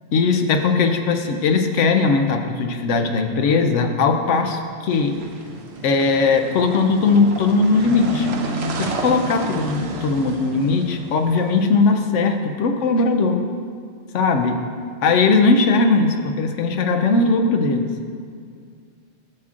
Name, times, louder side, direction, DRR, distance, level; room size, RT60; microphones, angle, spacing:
voice 1, 0.1-5.2 5.8-8.3 8.8-13.4 14.1-14.6 15.0-17.9, left 4 dB, 85° left, 5 dB, 1.0 m, -19 dB
sound 1, 4.9-11.9, right 2 dB, 65° right, 0.9 m, -31 dB
12.0 x 7.3 x 2.5 m, 2.2 s
omnidirectional pair, 1.2 m